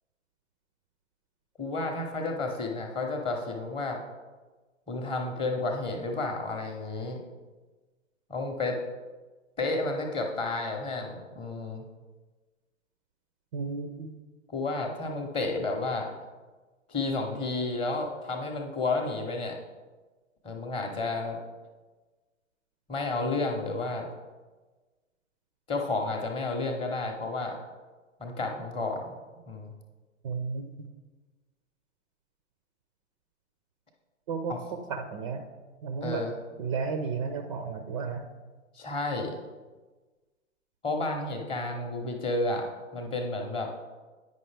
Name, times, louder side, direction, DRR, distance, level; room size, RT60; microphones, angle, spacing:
voice 1, 1.6-4.0 4.9-7.2 8.3-8.8 9.6-11.8 14.5-16.1 16.9-19.6 20.4-21.4 22.9-24.1 25.7-27.6 28.2-29.1 29.5-29.7 34.5-34.6 36.0-36.3 38.7-39.3 40.8-43.7, left 2 dB, 15° left, 3 dB, 0.7 m, -31 dB
voice 2, 13.5-14.1 30.2-30.7 34.3-35.5 35.8-36.2 36.6-38.3, right 5 dB, 30° right, 6 dB, 0.4 m, -33 dB
9.2 x 5.2 x 3.3 m, 1.3 s
figure-of-eight pair, 120°, 38 cm